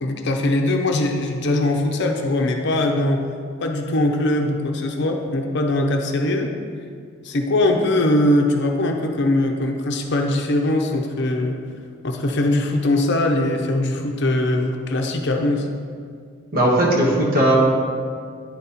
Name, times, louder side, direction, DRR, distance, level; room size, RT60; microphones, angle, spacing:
voice 1, 0.0-3.3 3.6-6.5 7.2-11.6 12.0-15.7, left 1 dB, 55° left, 3 dB, 0.6 m, -21 dB
voice 2, 16.5-17.5, right 1 dB, 45° right, -4 dB, 1.5 m, -17 dB
9.4 x 4.1 x 4.2 m, 2.1 s
head